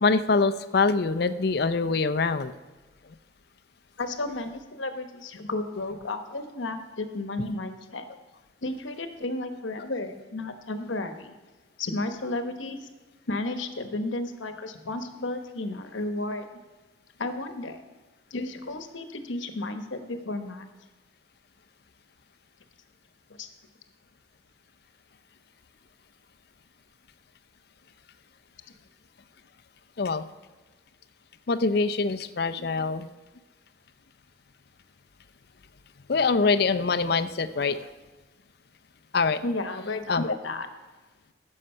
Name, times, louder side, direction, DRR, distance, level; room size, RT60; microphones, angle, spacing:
voice 1, 0.0-2.5 30.0-30.2 31.5-33.1 36.1-37.9 39.1-39.4 40.1-40.4, left 4 dB, 55° left, 12 dB, 0.5 m, -24 dB
voice 2, 4.0-8.0 8.6-11.3 11.8-12.9 13.3-16.5 17.2-17.8 18.3-20.7 23.3-23.5 32.6-32.8 39.4-40.7, left 2 dB, 75° left, 8 dB, 1.0 m, -33 dB
15.0 x 6.5 x 5.5 m, 1.2 s
head